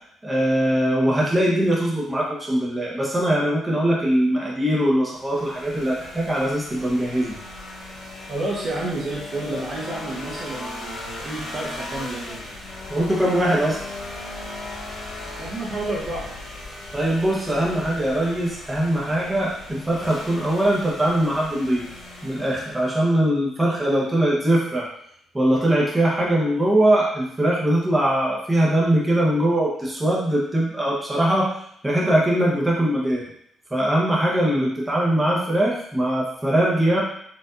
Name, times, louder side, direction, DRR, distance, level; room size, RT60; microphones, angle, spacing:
voice 1, 0.2-7.4 12.9-13.8 16.9-21.8 22.2-24.9 25.3-33.2 33.7-37.0, right 1 dB, 15° right, -5 dB, 0.9 m, -21 dB
sound 1, 5.2-23.0, left 2 dB, 80° left, 1.0 m, -37 dB
voice 2, 8.3-12.4 15.4-16.3, right 2 dB, 45° right, -3 dB, 1.0 m, -30 dB
4.5 x 2.5 x 2.5 m, 0.70 s
cardioid pair, 90°, 0 cm